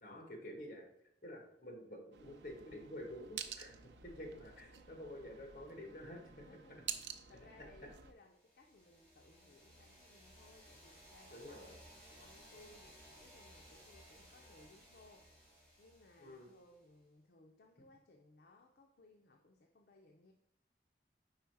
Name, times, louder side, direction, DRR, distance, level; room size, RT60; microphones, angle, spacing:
voice 1, 0.0-0.9 1.2-6.4 11.3-11.8 16.2-16.5, left 1 dB, 45° left, 2 dB, 1.3 m, -49 dB
sound 1, 2.1-8.1, right 8 dB, 90° right, 0.5 m, -49 dB
voice 2, 6.4-20.3, left 2 dB, 65° left, 2 dB, 0.5 m, -64 dB
sound 2, 8.2-17.0, equal, 10° left, 1.7 m, -60 dB
4.8 x 4.6 x 4.6 m, 0.76 s
head